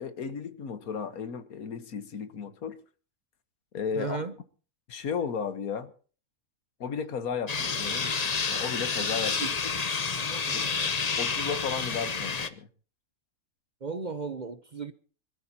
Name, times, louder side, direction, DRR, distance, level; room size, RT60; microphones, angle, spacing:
voice 1, 0.0-2.8 3.7-4.2 4.9-5.9 6.8-9.4 10.5-10.7 11.2-12.7, left 6 dB, 80° left, 1.7 m, -34 dB
voice 2, 3.9-4.3 9.4-9.5 10.3-10.9 13.8-14.9, right 5 dB, 40° right, 0.8 m, -36 dB
sound 1, 7.5-12.5, left 5 dB, 35° left, 0.8 m, -29 dB
25.5 x 13.5 x 2.9 m
omnidirectional pair, 1.5 m